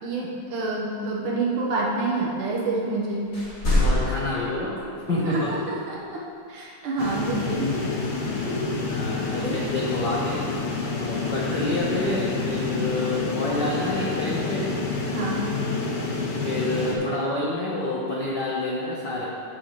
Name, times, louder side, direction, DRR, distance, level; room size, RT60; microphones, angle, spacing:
voice 1, 0.0-3.4 5.1-6.2 6.5-8.2 8.5-8.7 9.4-9.6 15.1-15.5, right 2 dB, 80° right, -5 dB, 2.6 m, -28 dB
sound 1, 3.3-5.0 7.5-7.6, left 1 dB, 30° left, 1.4 m, -24 dB
voice 2, 3.8-4.8 5.1-5.5 8.9-10.4 10.9-14.7 16.4-19.3, left 2 dB, 75° left, -6 dB, 1.0 m, -28 dB
sound 2, 7.0-16.9, left 3 dB, 60° left, 1.8 m, -28 dB
14.5 x 6.4 x 3.2 m, 2.5 s
omnidirectional pair, 3.7 m